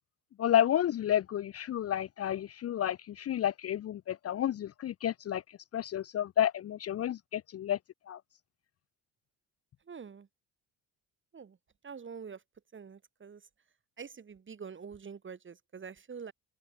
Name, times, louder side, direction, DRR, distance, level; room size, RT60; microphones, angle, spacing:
voice 1, 0.4-5.4 5.7-7.8 8.1-8.2, left 10 dB, 45° left, 0.6 m, -30 dB
voice 2, 9.9-10.3 11.3-11.6 11.8-12.4 12.7-13.4 14.0-16.3, right 6 dB, 35° right, 3.8 m, -45 dB
open air
cardioid pair, 100°, 34 cm